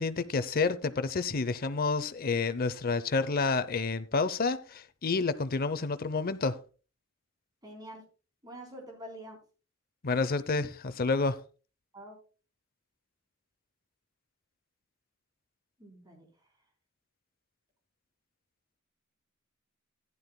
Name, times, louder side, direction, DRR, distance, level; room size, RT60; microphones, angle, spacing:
voice 1, 0.0-6.6 10.0-11.4, left 4 dB, 45° left, 0.7 m, -29 dB
voice 2, 7.6-8.0 8.4-9.4 11.9-12.2 15.8-16.3, equal, 20° right, 3.6 m, -46 dB
15.0 x 11.0 x 2.2 m
head